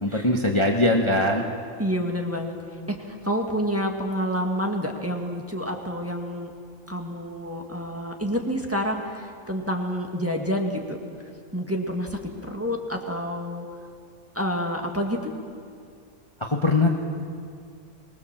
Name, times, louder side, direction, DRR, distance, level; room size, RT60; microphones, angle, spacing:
voice 1, 0.0-1.4 16.5-16.9, left 2 dB, 20° left, 1 dB, 1.3 m, -21 dB
voice 2, 1.8-2.5 3.1-6.5 6.9-11.0 11.5-13.7 14.3-15.3, equal, 10° right, 1 dB, 1.8 m, -28 dB
24.5 x 20.0 x 7.3 m, 2.2 s
omnidirectional pair, 1.5 m